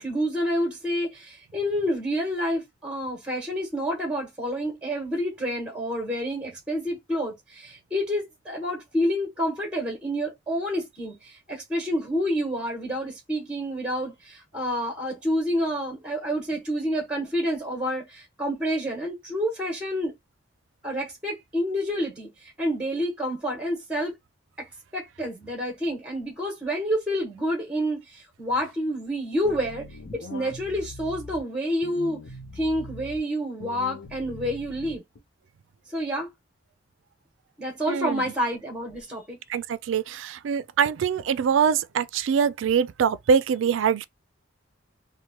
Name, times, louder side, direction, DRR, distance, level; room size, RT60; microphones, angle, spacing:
voice 1, 0.0-20.1 20.8-24.1 24.6-29.9 30.1-32.2 32.5-35.0 35.9-36.3 37.6-39.4, equal, 5° right, 1.1 m, -28 dB
sound 1, 29.4-31.4 31.8-33.2 33.6-35.2, left 3 dB, 75° left, 0.5 m, -41 dB
voice 2, 37.9-38.2 39.5-44.0, right 7 dB, 85° right, 0.3 m, -23 dB
2.9 x 2.1 x 2.9 m
head